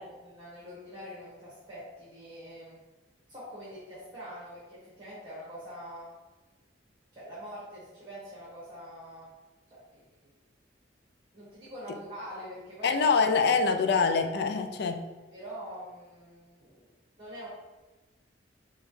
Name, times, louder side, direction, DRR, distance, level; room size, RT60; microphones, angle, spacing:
voice 1, 0.0-2.8 3.3-6.1 7.1-9.3 9.7-10.3 11.3-12.9 15.3-16.9 17.2-17.5, equal, 25° right, -8 dB, 1.1 m, -44 dB
voice 2, 12.8-15.1, left 5 dB, 60° left, 6 dB, 0.4 m, -25 dB
5.1 x 2.3 x 3.1 m, 1.2 s
head